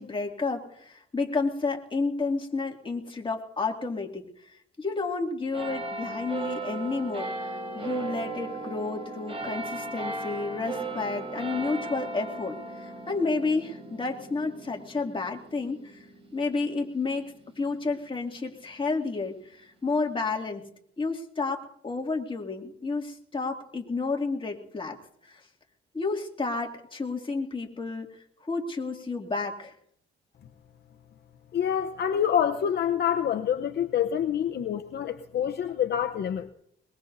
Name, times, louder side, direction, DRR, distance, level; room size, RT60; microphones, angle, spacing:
voice 1, 0.0-16.1 16.3-20.6 21.0-25.0 25.2-25.4 25.9-29.7, left 3 dB, 25° left, 1 dB, 2.4 m, -31 dB
sound 1, 5.5-18.4 19.1-19.2, right 3 dB, 30° right, 3.8 m, -37 dB
voice 2, 31.5-36.5, left 9 dB, 60° left, 6 dB, 0.8 m, -27 dB
22.0 x 21.5 x 2.7 m, 0.71 s
cardioid pair, 90°, 20 cm